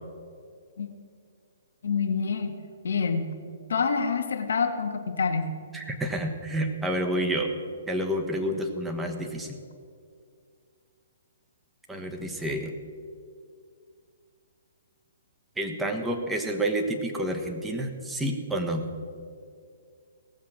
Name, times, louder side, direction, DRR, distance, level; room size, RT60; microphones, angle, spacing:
voice 1, 1.8-2.6 2.8-3.3 3.7-5.5, left 5 dB, 65° left, 6 dB, 1.3 m, -27 dB
voice 2, 5.7-7.5 7.9-9.6 11.9-12.8 15.6-18.9, right 1 dB, 10° right, 3 dB, 1.3 m, -29 dB
17.5 x 7.3 x 6.2 m, 2.3 s
figure-of-eight pair, 125°, 0 cm